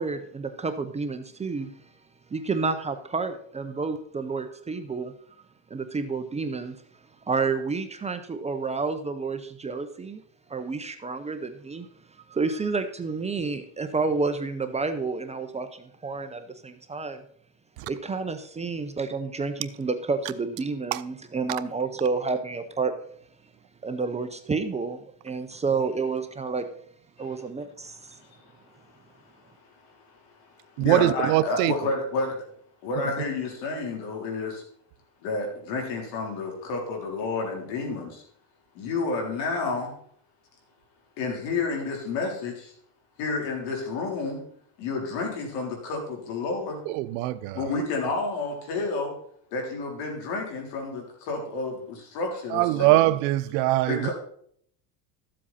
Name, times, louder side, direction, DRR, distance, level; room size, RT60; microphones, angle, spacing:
voice 1, 0.0-1.7 2.3-5.1 5.7-6.8 7.3-10.2 10.5-11.9 12.3-17.2 17.8-22.9 23.8-26.7 27.2-28.2, right 4 dB, 15° right, 0.6 m, -30 dB
voice 2, 28.1-28.7 29.8-30.0 30.4-32.4 32.8-34.6 35.2-38.2 38.8-39.9 41.2-42.7 43.2-44.4 44.8-46.8 47.5-49.1 49.5-53.0 53.9-54.1, left 3 dB, 80° left, 3.8 m, -30 dB
voice 3, 30.8-31.7 46.9-47.6 52.5-54.1, right 16 dB, 90° right, 0.8 m, -22 dB
13.0 x 7.7 x 4.2 m
cardioid pair, 140°, 45 cm